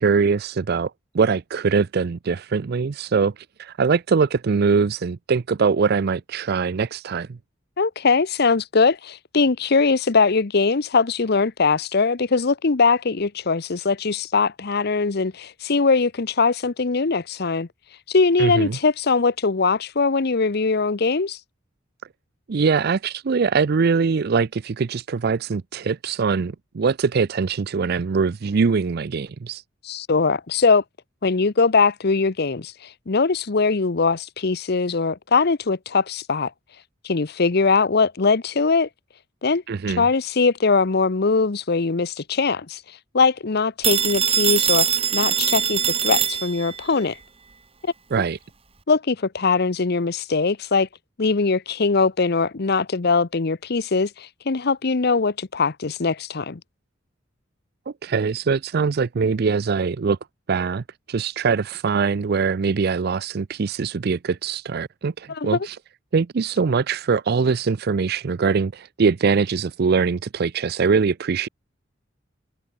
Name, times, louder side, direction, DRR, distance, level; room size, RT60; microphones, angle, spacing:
voice 1, 0.0-7.4 18.4-18.8 22.5-29.6 39.7-40.1 48.1-48.4 57.9-60.2 60.5-65.8 66.1-71.5, right 5 dB, 55° right, 0.4 m, -22 dB
voice 2, 7.8-17.7 18.1-21.4 29.8-30.8 31.2-32.7 33.1-36.5 37.0-38.9 39.4-39.6 40.0-42.8 43.1-44.9 45.1-47.2 48.9-50.9 51.2-56.6 65.3-65.6, left 4 dB, 55° left, 0.8 m, -21 dB
Telephone, 43.8-46.8, right 8 dB, 30° right, 2.3 m, -22 dB
head